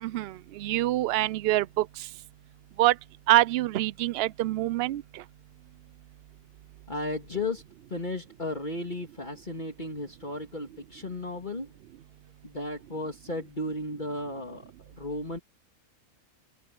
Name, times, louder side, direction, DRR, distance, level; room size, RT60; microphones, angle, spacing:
voice 1, 0.0-2.1 2.8-2.9 3.3-5.2, right 15 dB, 65° right, 0.6 m, -25 dB
voice 2, 6.9-7.6 7.9-11.7 12.4-15.4, left 2 dB, 35° left, 2.7 m, -34 dB
open air
omnidirectional pair, 1.5 m